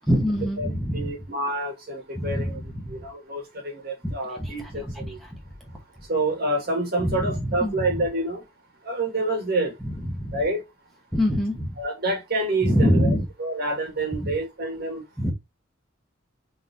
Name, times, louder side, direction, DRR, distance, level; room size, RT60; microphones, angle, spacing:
voice 1, 0.1-1.1 2.1-2.9 4.0-5.4 7.0-7.9 9.8-10.4 11.1-11.8 12.6-13.3 14.2-14.3 15.2-15.3, equal, ahead, 1.1 m, -25 dB
voice 2, 0.6-2.6 2.9-5.2 6.1-8.4 8.8-9.8 10.3-10.6 11.8-15.0, right 2 dB, 50° right, 1.7 m, -28 dB
3.9 x 3.4 x 2.7 m
head